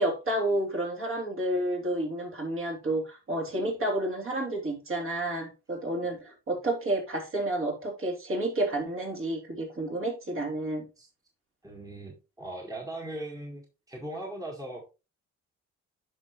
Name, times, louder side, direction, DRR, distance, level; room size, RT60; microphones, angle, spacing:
voice 1, 0.0-10.8, right 1 dB, 45° right, 1 dB, 3.3 m, -30 dB
voice 2, 11.6-14.9, right 1 dB, 10° right, 0 dB, 1.7 m, -39 dB
9.6 x 5.6 x 3.1 m, 0.29 s
cardioid pair, 90°, 30 cm